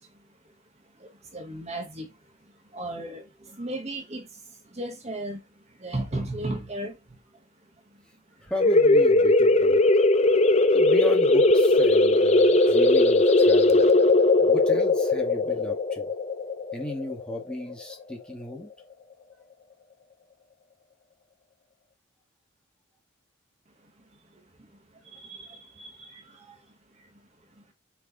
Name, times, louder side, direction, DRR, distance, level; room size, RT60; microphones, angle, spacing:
voice 1, 1.3-2.1 2.7-3.2 3.6-4.2 4.8-5.4 5.8-6.9 25.2-26.2, right 1 dB, 35° right, 1.2 m, -34 dB
voice 2, 8.4-9.8 10.7-13.8 14.4-16.1 16.7-18.7, left 1 dB, 5° left, 1.6 m, -35 dB
sound 1, 8.6-17.9, left 2 dB, 30° left, 0.6 m, -19 dB
6.1 x 4.8 x 4.0 m
head